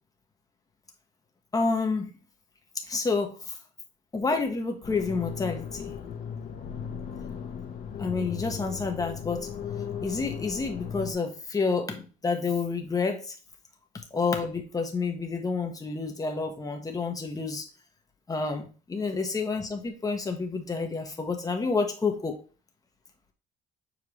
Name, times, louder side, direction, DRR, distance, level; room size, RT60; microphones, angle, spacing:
voice 1, 1.5-2.1 2.9-3.6 4.1-5.9 8.0-9.5 10.0-13.3 13.9-17.7 18.3-22.4, left 4 dB, 20° left, 3 dB, 1.5 m, -29 dB
sound 1, 4.8-11.1, left 8 dB, 55° left, 1.5 m, -37 dB
6.9 x 4.6 x 3.2 m, 0.37 s
cardioid pair, 110°, 17 cm